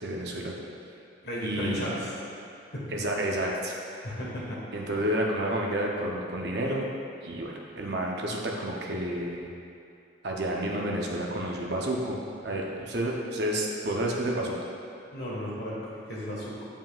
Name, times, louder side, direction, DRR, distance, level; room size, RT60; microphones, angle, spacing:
voice 1, 0.0-0.5 1.4-1.9 2.9-3.8 4.7-6.9 7.2-9.5 10.2-12.2 12.4-14.5, right 1 dB, 65° right, -2 dB, 0.7 m, -30 dB
voice 2, 1.2-2.2 2.7-2.8 4.0-4.6 4.9-5.0 15.1-16.7, equal, 60° left, -6 dB, 1.5 m, -35 dB
7.4 x 5.3 x 2.4 m, 2.5 s
head